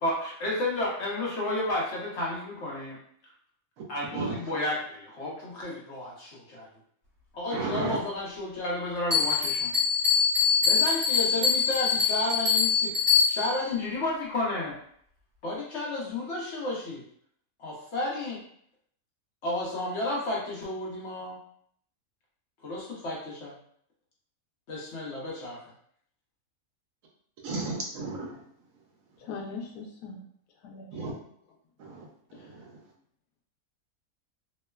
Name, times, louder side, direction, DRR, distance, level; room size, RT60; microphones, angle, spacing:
voice 1, 0.0-3.0 3.9-6.7 7.3-9.7 10.6-13.0 13.3-14.7 15.4-17.0 17.6-18.4 19.4-21.4 22.6-23.5 24.7-25.6, left 2 dB, 55° left, -4 dB, 0.9 m, -32 dB
voice 2, 7.5-8.0 27.4-28.4 30.9-31.1 31.8-32.7, right 3 dB, 70° right, -1 dB, 1.0 m, -34 dB
Bell, 9.1-13.6, left 6 dB, 40° right, 1.2 m, -24 dB
voice 3, 29.2-30.2 30.6-30.9 32.3-32.5, left 4 dB, 90° left, 1 dB, 1.1 m, -40 dB
2.9 x 2.1 x 2.2 m, 0.64 s
omnidirectional pair, 1.6 m